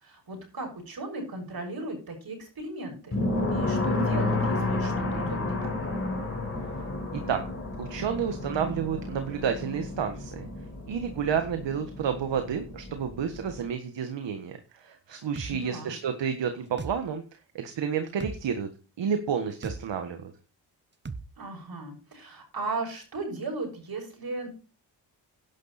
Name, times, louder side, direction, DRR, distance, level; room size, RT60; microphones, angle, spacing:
voice 1, 0.0-3.1 3.5-5.7 15.5-15.9 21.4-24.5, right 2 dB, 55° right, 2 dB, 6.7 m, -36 dB
sound 1, 3.1-13.7, left 2 dB, 30° left, 5.0 m, -31 dB
voice 2, 7.8-10.5 10.9-17.2 17.5-18.7 19.0-20.3, right 7 dB, 70° right, 7 dB, 1.6 m, -30 dB
sound 2, 15.4-15.5 16.8-17.0 18.2-18.4 19.6-19.8 21.0-21.2, right 4 dB, 25° right, 1.1 m, -36 dB
11.0 x 10.5 x 4.3 m, 0.36 s
cardioid pair, 70°, 45 cm